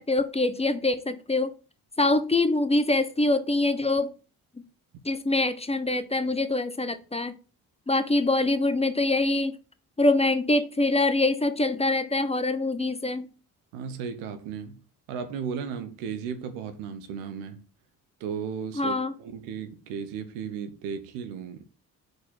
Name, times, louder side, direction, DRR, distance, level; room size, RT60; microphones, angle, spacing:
voice 1, 0.0-1.5 2.0-4.1 4.6-4.7 5.0-7.3 7.9-9.6 10.0-13.3 18.8-19.1, left 2 dB, 15° left, 0.8 m, -24 dB
voice 2, 13.7-14.8 15.1-17.7 18.2-21.6, right 7 dB, 85° right, 0.8 m, -35 dB
4.9 x 4.2 x 5.9 m
hypercardioid pair, 45°, 41 cm